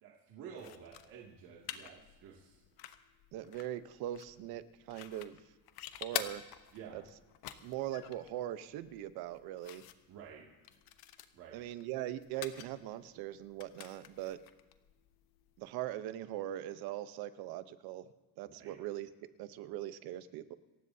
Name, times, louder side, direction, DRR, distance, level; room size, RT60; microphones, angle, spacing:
voice 1, 0.0-2.6 6.7-7.0 10.1-10.5 11.3-11.6 18.5-18.7, right 7 dB, 65° right, -3 dB, 2.4 m, -51 dB
sound 1, 0.6-15.7, left 12 dB, 85° left, 1.1 m, -48 dB
voice 2, 3.3-5.4 6.0-6.5 6.9-7.0 7.6-9.8 11.5-14.4 15.6-18.1 18.4-19.1 19.4-20.6, right 13 dB, 85° right, 12 dB, 1.0 m, -41 dB
28.0 x 15.5 x 2.8 m, 1.2 s
cardioid pair, 160°, 36 cm